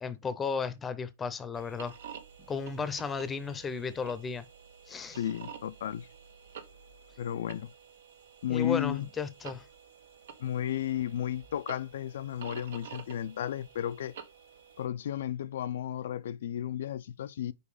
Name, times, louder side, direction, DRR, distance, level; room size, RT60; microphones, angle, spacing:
voice 1, 0.0-1.9 2.5-4.4 4.9-5.2 8.5-9.6, left 5 dB, 15° left, 0.7 m, -34 dB
sound 1, 1.5-14.9, right 7 dB, 80° right, 1.3 m, -50 dB
voice 2, 5.1-6.1 7.2-7.7 8.4-9.1 10.4-14.2 14.8-17.5, left 11 dB, 80° left, 0.4 m, -33 dB
5.3 x 4.7 x 4.8 m
supercardioid pair, 155°, 0 cm